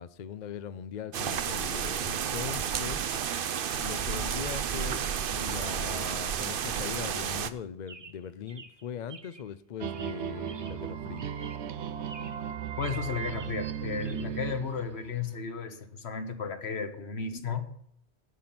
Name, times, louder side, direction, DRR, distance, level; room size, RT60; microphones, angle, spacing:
voice 1, 0.0-3.1 3.8-11.3, left 8 dB, 55° left, 14 dB, 0.6 m, -40 dB
sound 1, 1.1-7.5, right 8 dB, 60° right, 0.8 m, -31 dB
Chirp tweet, 7.9-9.5 9.9-10.9 11.2-11.7 12.0-12.5 12.8-14.3, right 4 dB, 30° right, 0.6 m, -50 dB
sound 2, 9.8-15.4, right 9 dB, 85° right, 1.0 m, -36 dB
voice 2, 12.8-17.7, left 5 dB, 75° left, 8 dB, 1.5 m, -34 dB
11.0 x 5.9 x 8.7 m, 0.69 s
omnidirectional pair, 1.1 m